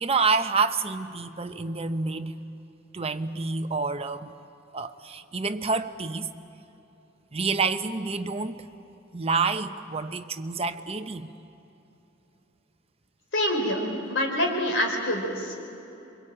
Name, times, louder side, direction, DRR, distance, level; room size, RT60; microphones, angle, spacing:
voice 1, 0.0-2.5 2.9-4.4 4.7-6.3 7.3-8.7 9.1-11.3, right 4 dB, 30° right, 0.9 m, -28 dB
voice 2, 13.3-13.8 14.1-15.5, left 1 dB, 70° left, 4.6 m, -26 dB
27.5 x 23.5 x 8.9 m
head